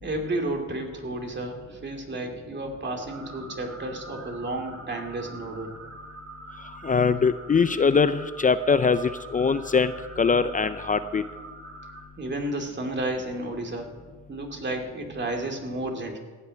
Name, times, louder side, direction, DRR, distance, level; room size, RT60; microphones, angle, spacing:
voice 1, 0.0-5.7 12.2-13.9 14.3-16.2, right 2 dB, 35° right, 2 dB, 2.7 m, -32 dB
sound 1, 3.1-12.0, right 2 dB, 55° right, 4.2 m, -44 dB
voice 2, 6.8-11.2, left 5 dB, 25° left, 12 dB, 0.5 m, -22 dB
15.5 x 6.0 x 9.5 m, 1.4 s
cardioid pair, 90°, 30 cm